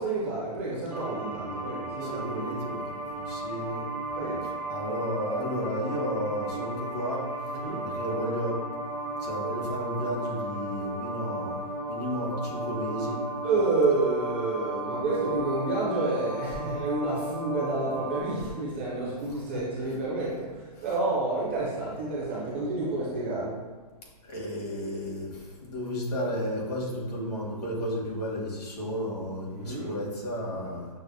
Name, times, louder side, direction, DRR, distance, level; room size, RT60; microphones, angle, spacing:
voice 1, 0.0-2.6 4.1-4.4 7.5-7.9 13.4-23.6 29.5-29.9, right 3 dB, 20° right, -6 dB, 0.4 m, -29 dB
sound 1, 0.9-18.2, right 1 dB, 90° right, 1.1 m, -35 dB
voice 2, 2.0-2.9 3.2-3.8 4.7-7.2 7.8-8.6 9.2-11.6 11.9-13.2 19.5-19.6 24.2-30.9, equal, 75° left, -4 dB, 1.5 m, -33 dB
6.0 x 2.0 x 2.6 m, 1.4 s
hypercardioid pair, 175°, 20 cm